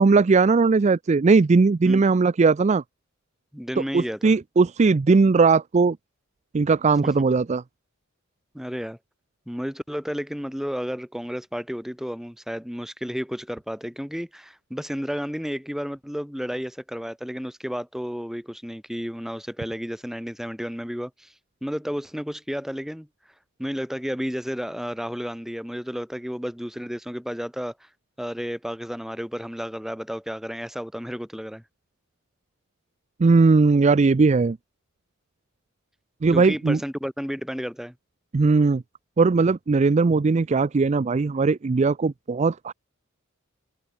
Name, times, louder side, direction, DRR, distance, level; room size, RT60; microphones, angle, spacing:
voice 1, 0.0-2.8 3.9-6.0 6.5-7.6 33.2-34.6 36.2-36.8 38.3-38.8 39.2-42.7, right 4 dB, 35° right, 0.4 m, -19 dB
voice 2, 3.5-4.3 7.0-7.1 8.5-9.0 9.5-21.3 21.6-23.1 23.6-27.9 28.2-31.6 36.3-37.9, equal, ahead, 2.5 m, -32 dB
open air
head